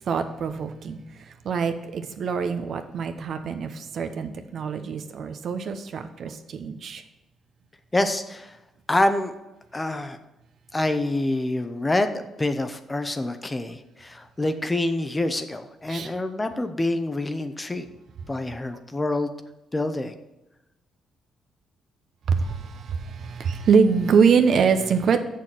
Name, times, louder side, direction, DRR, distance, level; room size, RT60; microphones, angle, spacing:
voice 1, 0.1-1.0 1.4-7.0 15.9-16.1 22.3-25.2, right 6 dB, 60° right, 8 dB, 0.9 m, -24 dB
voice 2, 7.9-8.6 8.9-9.3 9.7-10.2 10.7-17.9 18.3-19.3 19.7-20.1, left 2 dB, 20° left, 9 dB, 0.8 m, -26 dB
7.2 x 6.6 x 6.0 m, 0.97 s
cardioid pair, 90°, 0 cm